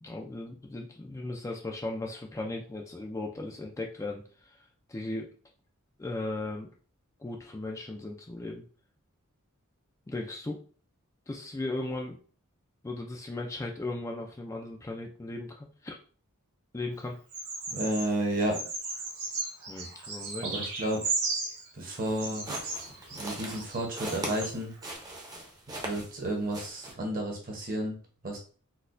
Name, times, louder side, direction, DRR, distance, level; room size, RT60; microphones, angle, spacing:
voice 1, 0.0-5.3 6.0-6.7 7.2-8.6 10.1-10.6 11.3-12.2 12.8-16.0 16.7-17.2 19.7-20.6, left 2 dB, 15° left, 0 dB, 0.3 m, -37 dB
Bird vocalization bird call bird song, 17.3-18.1 18.5-21.7 22.2-24.5 24.8-24.9, right 3 dB, 75° right, 1.2 m, -35 dB
voice 2, 17.7-18.6 20.4-21.0 21.7-22.5 23.2-24.7 25.8-28.0 28.2-28.4, right 1 dB, 40° right, 1 dB, 0.9 m, -31 dB
sound 1, 22.0-26.2 26.5-26.9, right 1 dB, 20° right, 0.7 m, -40 dB
4.1 x 2.2 x 2.5 m, 0.41 s
head